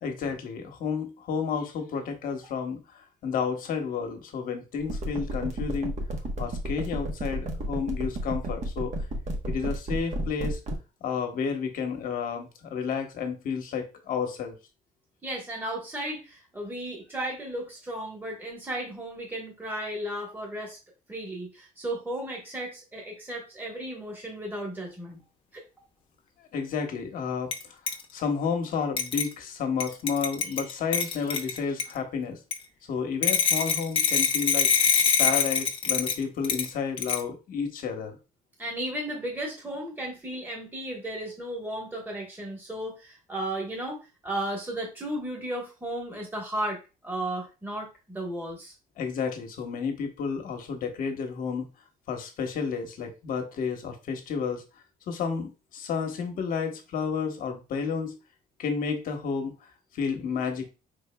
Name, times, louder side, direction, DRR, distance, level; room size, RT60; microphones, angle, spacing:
voice 1, 0.0-5.9 6.4-8.9 9.5-10.6 11.0-14.5 26.5-27.8 28.1-32.4 32.9-34.7 35.2-38.2 49.0-51.7 52.1-54.6 55.1-58.2 58.6-59.5 59.9-60.7, left 6 dB, 60° left, 5 dB, 1.1 m, -31 dB
sound 1, 4.8-10.8, right 1 dB, 50° right, 1.0 m, -31 dB
voice 2, 15.2-20.8 21.1-25.2 25.5-25.6 38.6-48.7, right 1 dB, 10° right, -1 dB, 1.3 m, -34 dB
sound 2, 27.5-27.6 27.9-28.0 29.0-29.3 29.8-31.9 32.5-32.6 33.2-36.7 37.0-37.2, left 6 dB, 35° left, 0.7 m, -24 dB
4.6 x 3.8 x 2.2 m, 0.29 s
cardioid pair, 125°, 16 cm